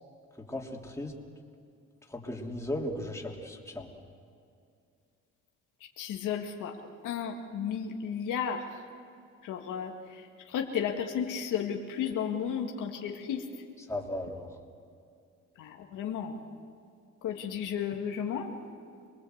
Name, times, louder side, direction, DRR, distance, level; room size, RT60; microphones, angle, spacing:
voice 1, 0.5-1.1 2.1-3.9 13.9-14.5, left 1 dB, 10° left, -1 dB, 3.2 m, -36 dB
voice 2, 6.0-6.8 7.0-8.6 9.4-13.4 15.6-16.4 17.2-18.5, left 8 dB, 85° left, 2 dB, 2.1 m, -33 dB
26.5 x 20.0 x 8.0 m, 2.4 s
cardioid pair, 90°, 30 cm